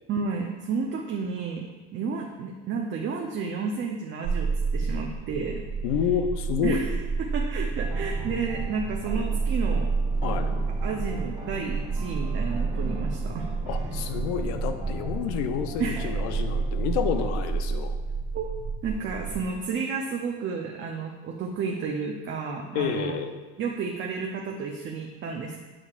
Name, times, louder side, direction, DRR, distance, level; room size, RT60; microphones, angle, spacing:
voice 1, 0.1-1.7 1.9-5.6 6.6-6.8 7.2-9.9 10.8-13.5 15.8-16.1 18.3-18.5 18.8-23.2 23.6-25.6, right 5 dB, 40° right, 1 dB, 0.7 m, -31 dB
sound 1, 4.2-19.4, right 4 dB, 65° right, 2.1 m, -29 dB
voice 2, 5.8-6.9 10.2-10.5 13.7-18.0 22.7-23.3, left 8 dB, 80° left, 8 dB, 0.8 m, -29 dB
sound 2, 7.8-17.3, left 1 dB, 15° right, 1.6 m, -40 dB
8.8 x 6.3 x 2.5 m, 1.2 s
supercardioid pair, 110°, 30 cm